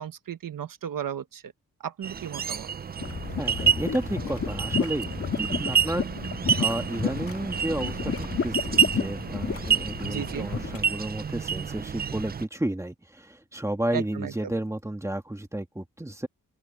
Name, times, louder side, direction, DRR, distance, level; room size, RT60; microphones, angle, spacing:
voice 1, 0.0-1.5 1.8-2.7 10.0-10.5 13.9-14.3, right 9 dB, 80° right, 1.3 m, -34 dB
sound 1, 2.0-12.5, right 7 dB, 30° right, 0.4 m, -29 dB
sound 2, 3.0-10.8, left 6 dB, 45° left, 1.8 m, -32 dB
voice 2, 3.4-6.1 6.6-16.3, right 1 dB, 10° right, 1.7 m, -32 dB
open air
wide cardioid pair, 130°, 33 cm